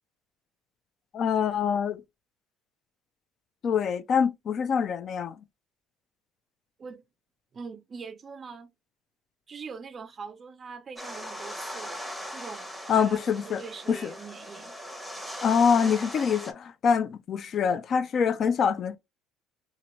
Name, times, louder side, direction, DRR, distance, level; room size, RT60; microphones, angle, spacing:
voice 1, 1.1-2.0 3.6-5.4 12.9-14.1 15.4-19.0, left 6 dB, 45° left, 0.4 m, -25 dB
voice 2, 7.5-8.7 9.5-11.9 12.3-14.8, right 5 dB, 35° right, 0.4 m, -42 dB
sound 1, 11.0-16.5, equal, 5° left, 0.8 m, -39 dB
2.7 x 2.5 x 3.0 m
cardioid pair, 110°, 0 cm